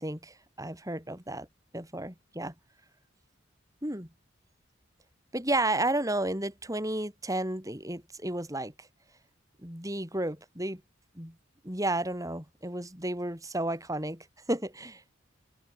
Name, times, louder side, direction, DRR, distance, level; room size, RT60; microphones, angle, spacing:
voice 1, 0.0-1.5 1.7-2.5 3.8-4.1 5.3-8.9 9.6-10.8 11.1-11.3 11.6-15.0, right 1 dB, 15° right, 6.6 m, -32 dB
open air
head